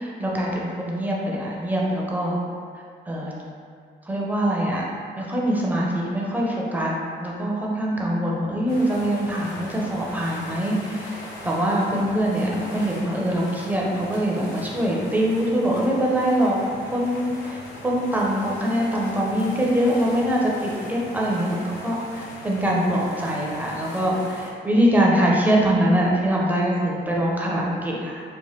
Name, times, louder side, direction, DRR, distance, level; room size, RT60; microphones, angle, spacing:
voice 1, 0.0-2.4 3.1-3.3 4.1-4.8 5.2-6.9 7.2-11.2 11.4-16.6 16.9-28.2, right 1 dB, 10° right, -4 dB, 0.5 m, -23 dB
sound 1, 8.7-24.5, left 1 dB, 90° left, 0.6 m, -40 dB
3.0 x 2.1 x 3.1 m, 2.1 s
cardioid pair, 90°, 20 cm